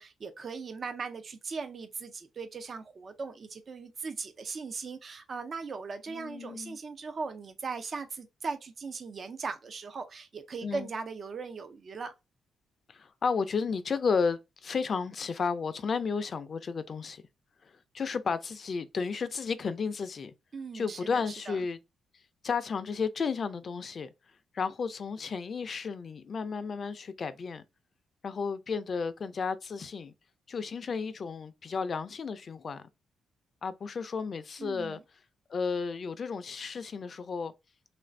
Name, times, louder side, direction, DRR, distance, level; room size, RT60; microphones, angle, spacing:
voice 1, 0.0-12.1 20.5-21.6 34.6-35.0, right 4 dB, 40° right, 0.4 m, -39 dB
voice 2, 6.1-6.8 10.6-10.9 12.9-17.2 17.6-20.3 20.7-21.8 22.4-24.1 24.5-27.6 28.2-30.1 30.5-32.8 33.6-35.0 35.5-37.5, left 5 dB, 40° left, 0.4 m, -33 dB
3.1 x 2.5 x 3.2 m
cardioid pair, 115°, 0 cm